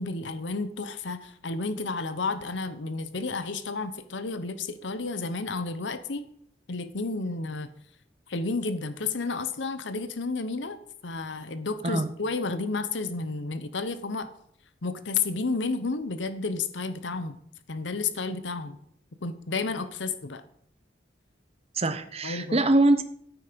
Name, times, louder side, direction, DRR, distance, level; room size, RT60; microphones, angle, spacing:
voice 1, 0.0-6.3 6.7-7.7 8.3-10.8 11.0-14.3 14.8-17.4 17.7-18.8 19.2-20.4 22.2-22.6, left 3 dB, 75° left, 12 dB, 0.9 m, -31 dB
voice 2, 21.7-23.0, right 2 dB, 35° right, 11 dB, 1.0 m, -23 dB
14.0 x 8.7 x 5.2 m, 0.67 s
head